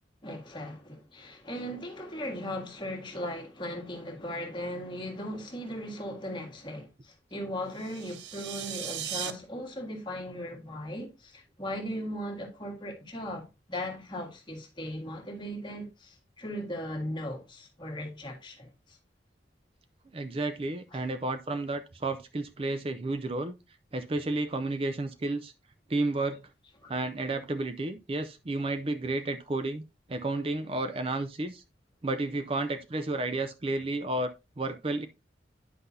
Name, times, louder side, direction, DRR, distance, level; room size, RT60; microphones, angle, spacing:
voice 1, 0.2-19.0 20.9-21.1 26.8-26.9, equal, 25° left, 1.6 m, -38 dB
sound 1, 7.7-9.3, right 10 dB, 75° right, 0.6 m, -37 dB
voice 2, 20.1-23.5 23.9-25.5 25.9-26.4 26.9-29.8 30.1-31.6 32.0-35.1, right 2 dB, 30° right, 0.5 m, -31 dB
9.5 x 5.8 x 2.7 m
head